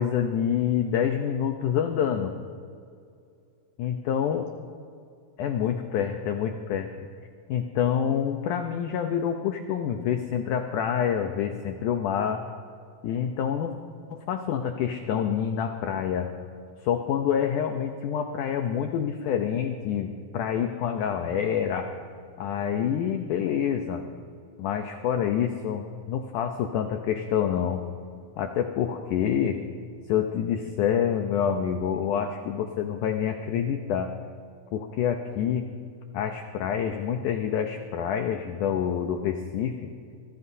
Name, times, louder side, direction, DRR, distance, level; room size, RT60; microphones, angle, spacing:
voice 1, 0.0-2.3 3.8-4.5 5.4-6.9 7.5-12.4 13.0-13.7 14.1-16.3 16.8-21.9 22.4-24.0 24.6-27.8 28.4-29.6 30.1-34.1 34.7-35.7 36.1-39.9, left 8 dB, 80° left, 5 dB, 1.8 m, -27 dB
25.0 x 17.0 x 2.7 m, 2.3 s
omnidirectional pair, 4.6 m